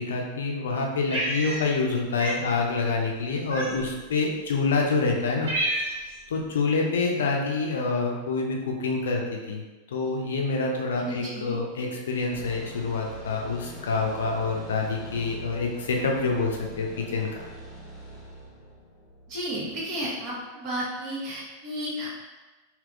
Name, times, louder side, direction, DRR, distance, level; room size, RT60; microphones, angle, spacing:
voice 1, 0.0-5.5 6.3-9.6 9.9-17.3, left 3 dB, 65° left, 1 dB, 0.5 m, -27 dB
Cat, 1.1-1.9 2.2-2.4 3.5-4.0 4.7-4.8 5.1-6.2, right 1 dB, 65° right, 1.2 m, -29 dB
voice 2, 11.0-11.6 19.3-22.1, equal, 40° right, -5 dB, 1.0 m, -33 dB
sound 1, 12.3-20.3, right 1 dB, 20° left, 0.8 m, -43 dB
3.3 x 2.8 x 2.4 m, 1.2 s
figure-of-eight pair, 90°, 0 cm